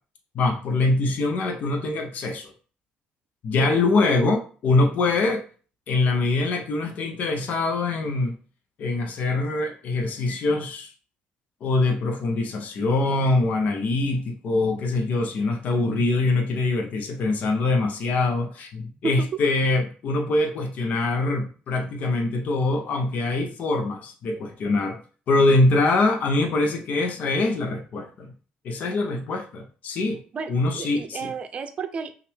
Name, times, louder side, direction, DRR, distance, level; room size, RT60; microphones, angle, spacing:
voice 1, 0.3-2.5 3.4-5.5 5.9-8.3 8.8-10.9 11.6-25.0 25.3-28.3 28.6-30.2 30.5-31.3, left 2 dB, 60° left, 3 dB, 0.8 m, -23 dB
voice 2, 30.3-32.1, right 5 dB, 40° right, 9 dB, 0.6 m, -32 dB
5.6 x 2.5 x 3.5 m, 0.39 s
cardioid pair, 120°, 3 cm